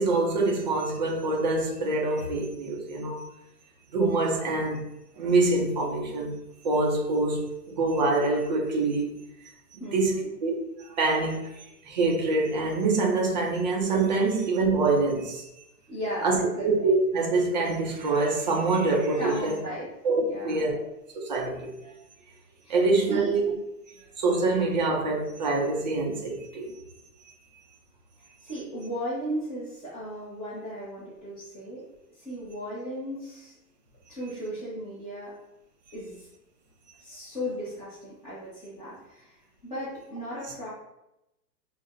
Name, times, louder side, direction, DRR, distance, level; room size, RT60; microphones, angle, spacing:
voice 1, 0.0-3.3 3.9-4.9 5.2-6.4 6.6-9.2 9.7-10.1 10.4-11.6 11.9-15.5 16.2-19.5 20.0-20.8 21.1-21.9 22.7-23.5 24.2-26.7, right 3 dB, 30° right, 0.4 m, -25 dB
voice 2, 9.8-10.3 15.9-16.7 19.2-19.9 20.2-20.7 22.6-22.8 23.1-23.3 28.2-31.8 32.1-33.5 34.1-35.3 35.9-36.3 37.0-40.7, equal, 10° left, 0.6 m, -36 dB
5.4 x 2.1 x 2.5 m
hypercardioid pair, 135°, 50 cm